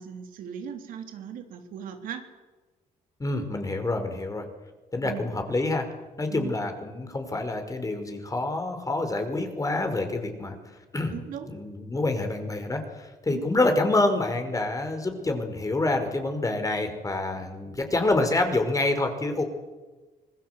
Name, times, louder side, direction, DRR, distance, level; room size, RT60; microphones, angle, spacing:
voice 1, 0.0-2.3 5.0-5.3 6.3-6.6 11.1-11.5 13.3-13.5, right 8 dB, 85° right, 6 dB, 3.3 m, -38 dB
voice 2, 3.2-4.5 4.9-5.9 6.2-10.6 10.9-11.2 11.5-19.4, left 2 dB, 25° left, 6 dB, 5.4 m, -27 dB
26.0 x 20.5 x 8.4 m, 1.2 s
cardioid pair, 85°, 14 cm